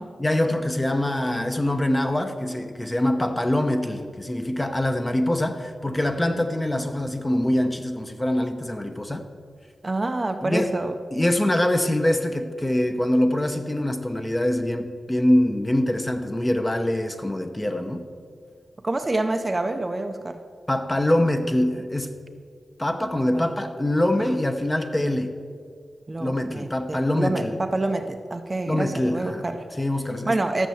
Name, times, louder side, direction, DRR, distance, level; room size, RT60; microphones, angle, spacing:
voice 1, 0.2-9.2 10.4-10.7 11.1-18.0 20.7-22.1 22.8-25.3 26.2-27.5 28.7-29.4 29.8-30.4, left 1 dB, 15° left, 6 dB, 0.8 m, -24 dB
voice 2, 9.8-10.9 18.8-20.4 23.3-23.6 26.1-29.7 30.3-30.7, right 2 dB, 25° right, 6 dB, 0.6 m, -27 dB
13.5 x 6.7 x 7.8 m, 2.1 s
wide cardioid pair, 150°, 0 cm